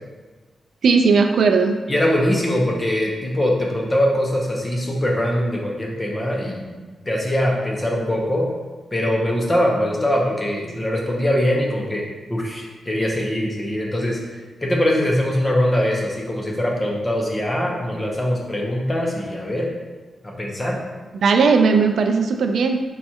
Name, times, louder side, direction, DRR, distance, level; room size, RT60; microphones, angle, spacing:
voice 1, 0.8-1.7 21.1-22.8, right 5 dB, 75° right, 5 dB, 0.3 m, -17 dB
voice 2, 1.9-6.8 7.1-8.4 8.9-12.0 12.3-19.7 20.2-20.8, left 1 dB, 20° left, -2 dB, 0.7 m, -22 dB
4.2 x 2.3 x 4.3 m, 1.3 s
wide cardioid pair, 125°, 0 cm